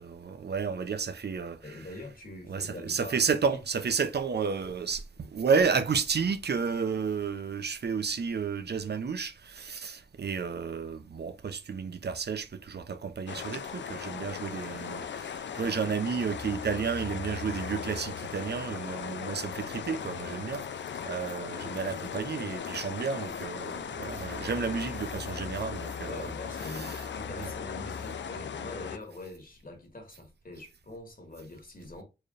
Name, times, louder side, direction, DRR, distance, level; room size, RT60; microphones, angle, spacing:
voice 1, 0.0-1.8 2.5-20.6 21.0-26.3 26.7-27.0 27.4-27.5, right 5 dB, 65° right, 0.6 m, -31 dB
voice 2, 1.6-3.2 3.5-3.6 21.3-21.5 26.0-32.0, left 2 dB, 50° left, 1.9 m, -44 dB
sound 1, 13.3-29.0, left 7 dB, 80° left, 0.4 m, -38 dB
4.6 x 3.2 x 2.5 m
cardioid pair, 55°, 18 cm